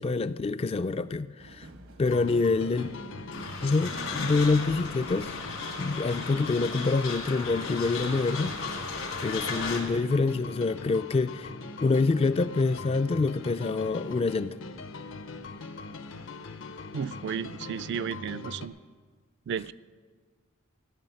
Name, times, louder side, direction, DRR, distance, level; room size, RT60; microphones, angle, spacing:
voice 1, 0.0-1.7 2.0-2.9 3.6-5.3 5.8-8.5 9.2-11.5 11.8-14.6, left 3 dB, 30° left, 13 dB, 0.3 m, -26 dB
sound 1, 1.4-8.9, right 2 dB, 80° right, 1.1 m, -51 dB
sound 2, 2.0-18.7, left 3 dB, 65° left, 0.7 m, -42 dB
sound 3, 3.3-9.8, left 4 dB, 80° left, 2.5 m, -36 dB
voice 2, 16.9-18.7 19.5-19.7, right 7 dB, 55° right, 15 dB, 0.3 m, -33 dB
15.0 x 6.3 x 9.1 m, 1.5 s
head